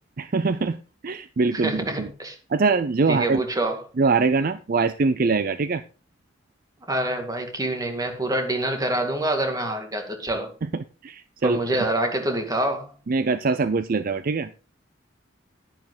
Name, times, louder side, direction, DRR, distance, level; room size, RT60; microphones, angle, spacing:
voice 1, 0.2-0.8 1.0-2.1 2.5-3.4 4.0-5.8 10.7-11.6 13.1-14.5, right 4 dB, 50° right, 0.5 m, -23 dB
voice 2, 1.5-2.4 3.1-3.8 6.9-10.5 11.4-12.9, right 1 dB, 20° right, 2.1 m, -26 dB
11.0 x 10.5 x 3.9 m
head